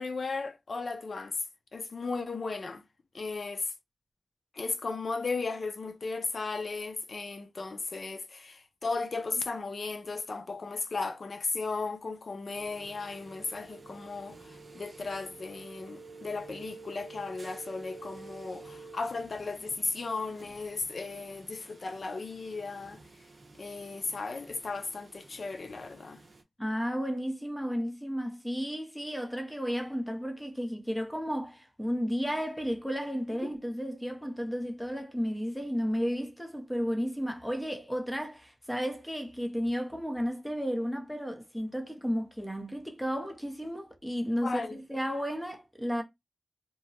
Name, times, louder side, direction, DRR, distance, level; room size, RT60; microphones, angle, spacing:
voice 1, 0.0-1.4 1.7-2.8 3.1-3.7 4.5-23.0 23.6-26.2 33.4-33.6 44.4-44.8, left 3 dB, 65° left, 0.5 m, -35 dB
sound 1, 12.5-26.4, right 3 dB, 60° right, 0.5 m, -50 dB
voice 2, 26.6-46.0, equal, 5° left, 0.7 m, -33 dB
2.9 x 2.2 x 2.7 m
wide cardioid pair, 75°, 0 cm